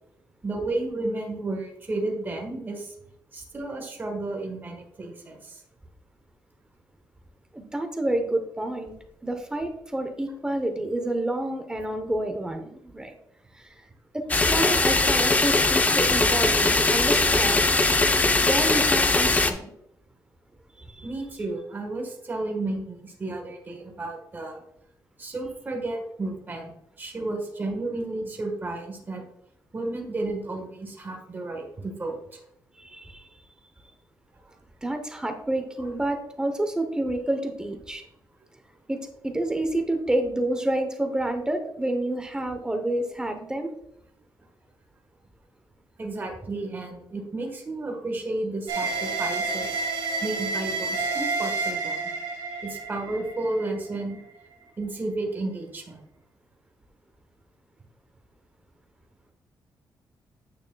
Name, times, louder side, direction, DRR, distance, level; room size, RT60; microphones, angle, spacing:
voice 1, 0.4-2.9 3.3-5.6 21.0-24.6 25.2-26.7 27.0-29.2 29.7-32.4 35.8-35.9 46.0-49.8 50.2-52.0 52.6-54.2 54.8-56.0, right 2 dB, 25° right, 2 dB, 1.3 m, -32 dB
voice 2, 7.5-8.9 9.2-13.2 13.5-13.7 14.1-17.6 18.4-19.7 20.8-21.1 32.8-33.2 34.8-38.0 38.9-43.7, right 1 dB, 10° right, 5 dB, 0.8 m, -29 dB
sound 1, 14.3-19.5, left 3 dB, 20° left, 0.5 m, -21 dB
sound 2, 48.7-54.0, right 3 dB, 85° right, 1.3 m, -29 dB
8.9 x 6.4 x 2.3 m, 0.76 s
cardioid pair, 145°, 8 cm